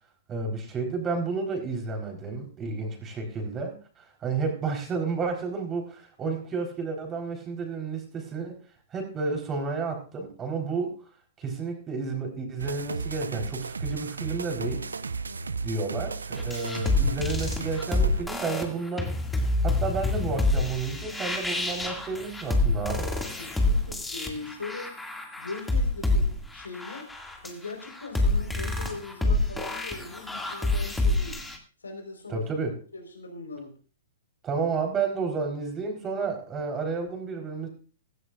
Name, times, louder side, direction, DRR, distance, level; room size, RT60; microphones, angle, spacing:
voice 1, 0.3-8.6 8.9-11.0 11.4-14.9 15.6-19.2 19.6-23.1 32.3-32.8 34.4-37.7, right 4 dB, 20° right, 3 dB, 4.1 m, -31 dB
sound 1, 12.6-18.2, right 4 dB, 80° right, 0.7 m, -34 dB
sound 2, 16.4-31.6, left 2 dB, 5° left, 2.2 m, -27 dB
voice 2, 23.4-25.0 25.4-27.1 27.4-31.4 31.8-33.7, left 3 dB, 80° left, 4 dB, 4.5 m, -40 dB
16.0 x 15.5 x 2.5 m, 0.36 s
figure-of-eight pair, 110°, 0 cm